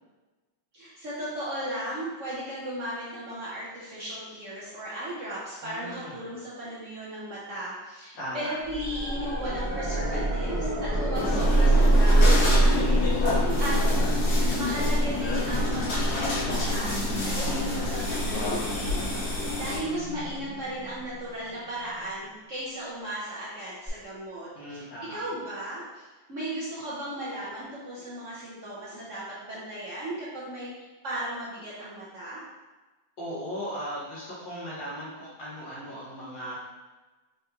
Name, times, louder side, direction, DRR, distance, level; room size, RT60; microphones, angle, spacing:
voice 1, 0.7-13.1 13.6-13.8 14.2-24.8 25.1-32.4, right 1 dB, 60° right, -7 dB, 0.8 m, -36 dB
voice 2, 5.6-6.2 8.1-8.6 13.2-13.7 24.5-25.2 33.2-36.5, equal, 50° left, -8 dB, 1.7 m, -37 dB
sound 1, 8.6-21.5 23.9-24.0, right 1 dB, 5° left, 0.9 m, -25 dB
sound 2, 11.1-19.8, left 2 dB, 85° left, 2.3 m, -29 dB
5.7 x 2.5 x 2.8 m, 1.2 s
omnidirectional pair, 2.2 m